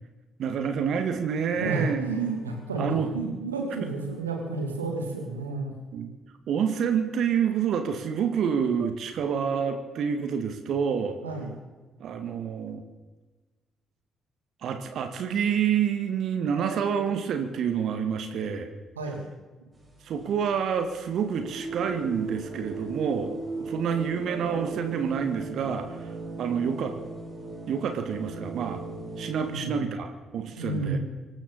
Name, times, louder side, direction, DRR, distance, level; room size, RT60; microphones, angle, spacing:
voice 1, 0.4-2.0 2.8-3.1 3.8-3.9 5.9-6.1 6.5-11.2 12.0-12.8 14.6-18.7 20.0-23.3 23.6-26.1 26.4-26.9 27.7-28.8 29.2-31.0, right 7 dB, 60° right, 7 dB, 1.9 m, -28 dB
voice 2, 1.5-5.7 11.2-11.5 18.9-19.3 29.5-29.9 30.6-31.0, right 3 dB, 85° right, 1 dB, 2.8 m, -31 dB
sound 1, 19.7-29.6, right 3 dB, 30° right, 5.7 m, -38 dB
25.5 x 13.5 x 4.2 m, 1.3 s
figure-of-eight pair, 40°, 0 cm